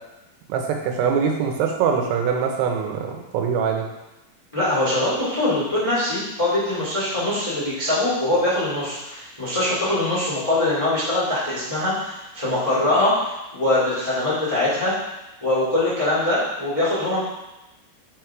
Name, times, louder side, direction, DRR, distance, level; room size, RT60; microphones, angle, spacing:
voice 1, 0.5-3.9, right 6 dB, 85° right, 3 dB, 2.9 m, -23 dB
voice 2, 4.5-14.9 15.4-17.2, left 1 dB, 20° left, -9 dB, 0.9 m, -22 dB
5.3 x 5.2 x 4.6 m, 0.99 s
omnidirectional pair, 4.6 m